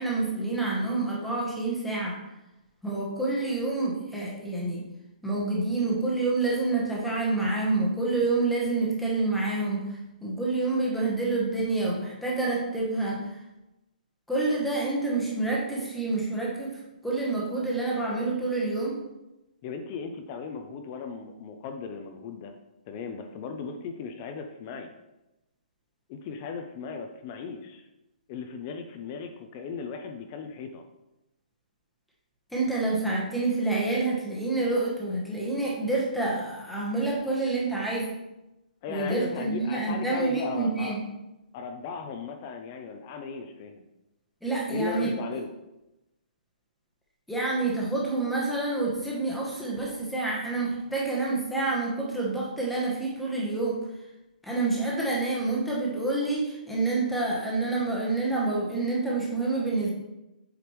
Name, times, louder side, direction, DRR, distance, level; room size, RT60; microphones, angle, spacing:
voice 1, 0.0-2.2 2.8-4.8 5.2-9.9 10.2-13.3 14.3-19.0 32.5-38.1 38.9-41.0 44.4-45.1 47.3-53.8 54.4-59.9, right 3 dB, ahead, -5 dB, 0.9 m, -28 dB
voice 2, 19.6-22.5 22.9-24.9 26.1-27.8 28.3-30.8 38.8-41.0 41.5-43.9 44.7-45.5, left 5 dB, 20° left, 5 dB, 0.4 m, -37 dB
8.0 x 5.1 x 3.1 m, 0.95 s
hypercardioid pair, 175°, 5 cm